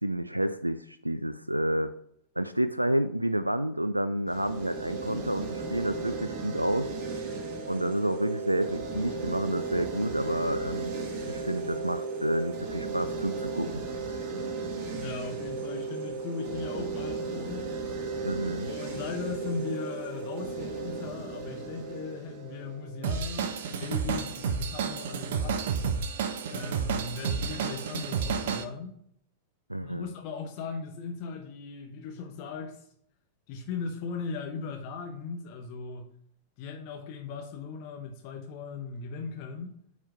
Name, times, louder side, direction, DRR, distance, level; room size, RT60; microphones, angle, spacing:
voice 1, 0.0-2.0 2.4-6.9 7.7-10.9 11.3-14.1 18.2-18.7 29.7-30.1, right 1 dB, 85° right, 12 dB, 0.3 m, -30 dB
sound 1, 4.3-23.3, right 4 dB, 40° right, 1.8 m, -35 dB
voice 2, 14.9-17.7 18.6-25.6 26.5-29.0 29.8-32.8 33.5-36.1 36.6-39.8, left 4 dB, 45° left, 3 dB, 1.0 m, -38 dB
Drum kit / Drum, 23.0-28.6, right 6 dB, 55° right, 0.7 m, -31 dB
9.0 x 4.3 x 4.7 m, 0.68 s
figure-of-eight pair, 90°, 0 cm